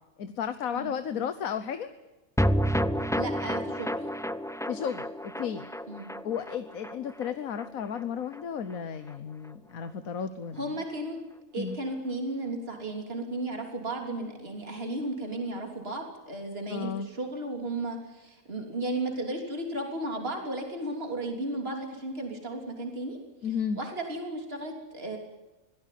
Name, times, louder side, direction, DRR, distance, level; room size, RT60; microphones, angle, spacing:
voice 1, 0.2-1.9 4.7-5.6 6.2-10.7 11.6-11.8 16.7-17.1 23.4-23.8, left 7 dB, 80° left, 10 dB, 1.5 m, -33 dB
sound 1, 2.4-8.8 9.1-9.2 9.4-9.5, equal, 5° left, 0.5 m, -31 dB
voice 2, 3.2-4.0 5.9-6.1 10.6-11.2 11.5-23.2 23.8-25.2, right 2 dB, 45° right, 2 dB, 3.6 m, -34 dB
24.5 x 17.5 x 9.3 m, 1.1 s
omnidirectional pair, 1.4 m